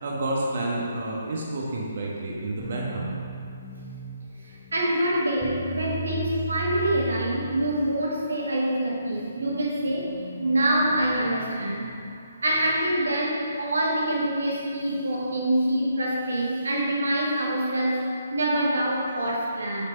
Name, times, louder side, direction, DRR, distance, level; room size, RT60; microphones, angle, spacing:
voice 1, 0.0-3.1, right 1 dB, 60° right, -3 dB, 1.3 m, -29 dB
sound 1, 2.6-8.2, right 3 dB, 5° right, 1.4 m, -36 dB
voice 2, 4.4-12.0 12.4-18.0 18.3-19.8, right 1 dB, 80° right, -3 dB, 1.3 m, -25 dB
6.9 x 5.4 x 4.4 m, 2.4 s
figure-of-eight pair, 140°, 0 cm